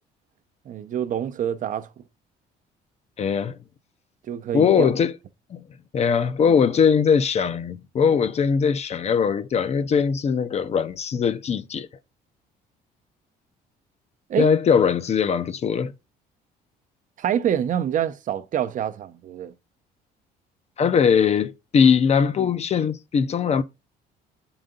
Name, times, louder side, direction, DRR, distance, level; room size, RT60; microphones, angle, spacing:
voice 1, 0.7-1.9 4.3-4.9 14.3-14.5 17.2-19.5, right 9 dB, 50° right, 0.6 m, -26 dB
voice 2, 3.2-3.6 4.5-5.1 5.5-5.6 5.9-11.9 14.4-15.9 20.8-23.6, left 6 dB, 40° left, 0.6 m, -20 dB
7.8 x 4.0 x 3.8 m
cardioid pair, 110°, 17 cm